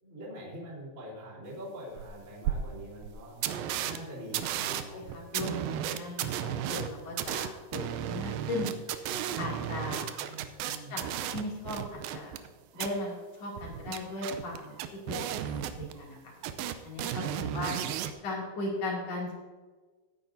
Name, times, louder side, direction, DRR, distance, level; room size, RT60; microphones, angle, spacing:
voice 1, 0.0-3.4 3.8-5.1 9.9-11.0 17.3-17.9, right 1 dB, 20° right, -8 dB, 3.8 m, -44 dB
sound 1, 2.0-2.1 2.4-2.5 3.0-3.1 3.4-4.0 4.3-12.5 12.8-12.9 13.6-16.2 16.4-18.1, right 11 dB, 80° right, 2.2 m, -34 dB
voice 2, 4.7-8.7 9.4-10.1 10.9-11.0 11.3-12.3 12.7-14.7 15.1-16.3 16.8-17.2 17.5-17.7 18.2-19.3, left 2 dB, 45° left, -3 dB, 3.3 m, -37 dB
17.5 x 9.3 x 2.7 m, 1.3 s
omnidirectional pair, 4.7 m